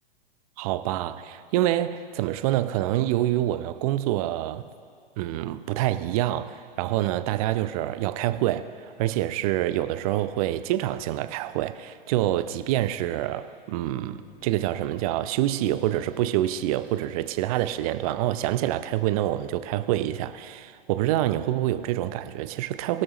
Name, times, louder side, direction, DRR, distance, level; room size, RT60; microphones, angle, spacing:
voice 1, 0.6-4.7 5.2-8.7 9.0-23.0, right 14 dB, 40° right, 13 dB, 0.6 m, -26 dB
Bass guitar, 14.1-17.2, left 2 dB, 35° left, 3.3 m, -58 dB
22.0 x 12.0 x 3.1 m, 2.1 s
figure-of-eight pair, 105°, 29 cm